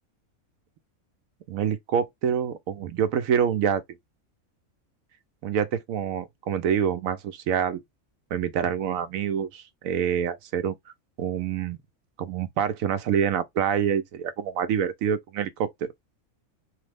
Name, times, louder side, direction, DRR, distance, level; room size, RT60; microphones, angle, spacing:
voice 1, 1.5-3.8 5.4-7.8 8.3-10.7 11.2-11.8 12.2-15.9, right 8 dB, 80° right, 1.0 m, -26 dB
3.2 x 2.0 x 3.3 m
omnidirectional pair, 1.4 m